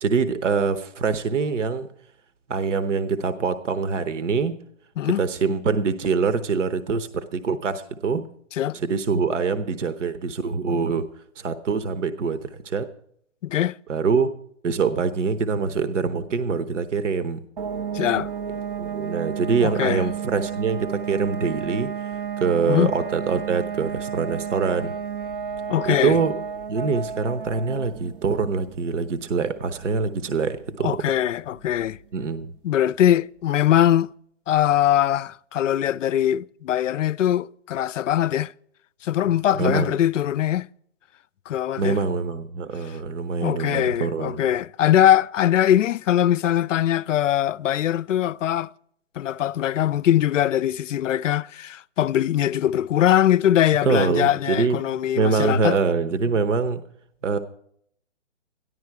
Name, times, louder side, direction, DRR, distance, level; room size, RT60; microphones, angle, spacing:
voice 1, 0.0-1.9 2.5-4.5 5.2-8.2 8.7-11.1 11.4-12.9 13.9-14.3 14.6-17.4 18.8-22.1 22.4-24.9 25.8-26.3 26.7-31.0 32.1-32.5 39.5-40.0 41.8-44.5 53.8-54.8 55.2-56.8 57.2-57.4, right 5 dB, 70° right, 1.0 m, -24 dB
voice 2, 13.4-13.8 17.9-18.3 19.6-20.0 22.7-22.9 25.7-26.2 30.8-32.0 32.6-34.1 34.5-38.5 39.0-40.7 41.5-42.0 42.9-43.0 43.4-48.7 49.2-55.8, left 11 dB, 75° left, 0.5 m, -21 dB
sound 1, 17.6-32.2, right 7 dB, 45° right, 0.6 m, -33 dB
13.5 x 11.5 x 4.7 m
hypercardioid pair, 155°, 38 cm